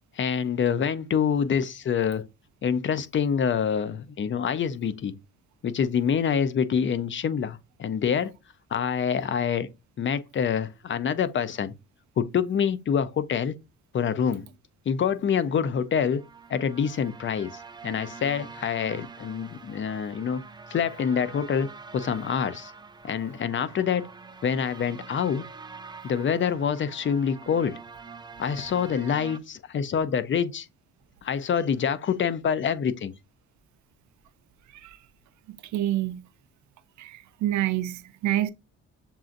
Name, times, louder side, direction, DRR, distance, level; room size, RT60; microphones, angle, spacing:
voice 1, 0.2-2.2 2.6-5.1 5.6-8.3 8.7-9.7 10.0-11.7 12.2-13.5 13.9-14.5 14.9-16.2 16.5-20.4 20.7-22.7 23.0-24.1 24.4-25.4 26.0-27.8 28.4-30.7 31.2-33.1, left 7 dB, 40° left, 0.5 m, -26 dB
sound 1, 15.9-29.4, right 5 dB, 15° right, 0.4 m, -45 dB
voice 2, 35.5-36.3 37.0-38.5, right 13 dB, 70° right, 0.5 m, -28 dB
6.9 x 2.5 x 2.5 m
cardioid pair, 90°, 30 cm